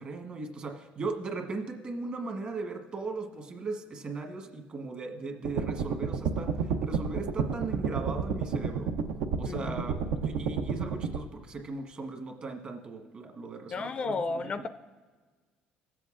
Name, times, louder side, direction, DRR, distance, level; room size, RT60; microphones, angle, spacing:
voice 1, 0.0-8.9 9.4-14.7, right 3 dB, 40° right, 3 dB, 1.3 m, -38 dB
sound 1, 5.4-11.2, right 6 dB, 90° right, 0.6 m, -30 dB
voice 2, 9.5-9.8 13.7-14.7, left 3 dB, 35° left, 11 dB, 0.3 m, -33 dB
18.0 x 7.7 x 2.5 m, 1.4 s
cardioid pair, 125°, 3 cm